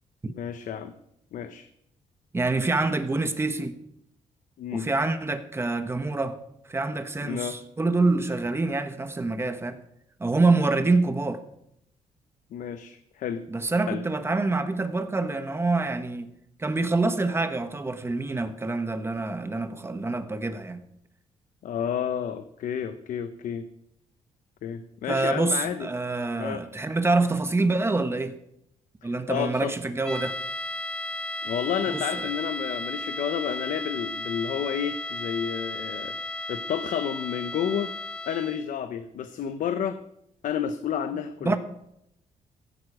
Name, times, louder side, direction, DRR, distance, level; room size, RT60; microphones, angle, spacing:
voice 1, 0.3-0.9 1.3-1.7 4.6-4.9 7.2-7.6 12.5-13.4 13.9-14.0 21.6-23.6 24.6-25.9 26.4-26.6 29.3-29.7 31.4-36.2 36.5-37.9 38.3-40.0 40.4-41.6, left 8 dB, 75° left, 0.9 m, -30 dB
voice 2, 2.3-3.7 4.7-6.4 6.7-9.8 10.2-11.4 13.5-16.3 16.6-20.8 25.1-28.4 29.0-30.4 31.9-32.3 41.4-41.6, right 3 dB, 20° right, 1.4 m, -26 dB
sound 1, 30.0-38.8, left 1 dB, 5° left, 0.7 m, -34 dB
15.5 x 11.5 x 4.9 m
cardioid pair, 120°, 13 cm